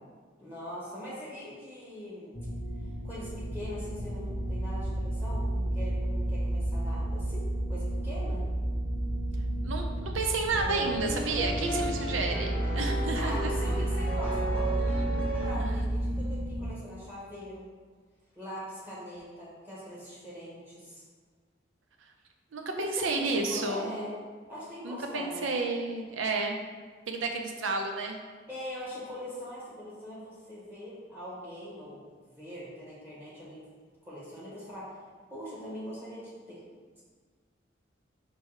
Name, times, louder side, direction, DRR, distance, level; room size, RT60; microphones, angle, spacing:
voice 1, 0.4-2.5 3.0-8.4 13.1-17.7 18.3-21.0 22.7-24.1 24.5-25.4 28.5-32.0 32.4-33.6 34.0-35.0 35.3-36.6, equal, 10° right, -8 dB, 1.1 m, -42 dB
sound 1, 2.3-16.7, right 1 dB, 45° left, 0.7 m, -31 dB
voice 2, 9.6-13.7 14.7-15.7 22.5-23.9 24.8-26.6 27.1-28.2, right 3 dB, 90° right, 3 dB, 0.5 m, -31 dB
sound 2, 10.5-15.6, right 2 dB, 10° left, 0.6 m, -35 dB
4.3 x 2.2 x 4.6 m, 1.5 s
head